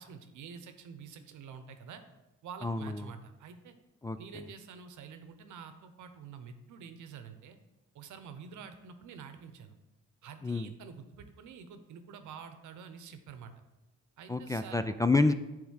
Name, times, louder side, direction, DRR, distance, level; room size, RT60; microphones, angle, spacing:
voice 1, 0.0-2.0 2.4-3.7 4.2-7.6 7.9-9.7 10.2-13.5 14.2-14.8, right 6 dB, 75° right, 9 dB, 0.9 m, -48 dB
voice 2, 2.6-3.1 4.0-4.4 10.4-10.7 14.3-15.3, left 3 dB, 10° left, 10 dB, 0.3 m, -29 dB
8.5 x 3.5 x 6.4 m, 1.0 s
cardioid pair, 90°, 30 cm